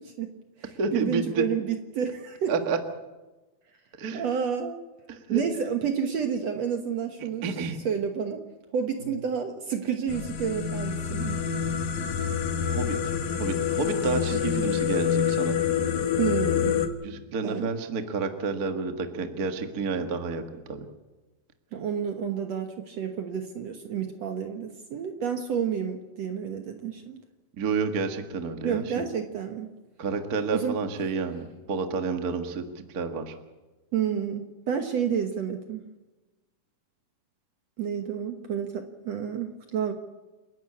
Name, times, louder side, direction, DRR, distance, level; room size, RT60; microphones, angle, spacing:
voice 1, 0.0-2.5 4.1-4.8 5.3-7.6 7.8-8.4 8.7-11.4 16.2-16.8 17.4-17.7 21.7-27.2 28.6-29.7 30.5-30.8 33.9-35.9 37.8-39.9, right 7 dB, 60° right, 5 dB, 2.0 m, -30 dB
voice 2, 0.8-1.4 2.5-2.8 4.0-4.2 5.1-5.4 7.2-7.8 12.6-12.9 13.4-15.6 17.0-20.4 20.7-20.8 27.6-29.0 30.0-32.7 32.9-33.3, right 4 dB, 40° right, 6 dB, 1.3 m, -30 dB
sound 1, 10.1-16.9, left 8 dB, 60° left, 2.4 m, -27 dB
29.0 x 12.0 x 8.5 m, 1.1 s
omnidirectional pair, 4.2 m